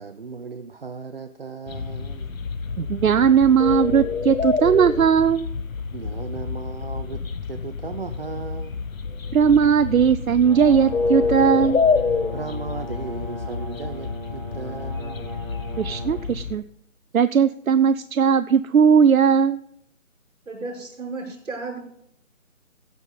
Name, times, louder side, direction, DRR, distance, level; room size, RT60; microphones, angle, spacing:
voice 1, 0.0-2.3 5.9-8.8 12.3-15.3, right 4 dB, 45° right, 8 dB, 0.6 m, -36 dB
sound 1, 1.7-16.6, left 4 dB, 75° left, 1.1 m, -28 dB
voice 2, 2.8-5.5 9.3-11.8 15.8-16.6 17.1-19.6, right 7 dB, 90° right, 13 dB, 0.6 m, -18 dB
Brass instrument, 10.4-16.2, right 1 dB, 15° right, 2.1 m, -38 dB
voice 3, 20.5-21.8, right 3 dB, 65° right, 2 dB, 5.6 m, -33 dB
16.5 x 5.6 x 5.3 m, 0.73 s
figure-of-eight pair, 160°, 41 cm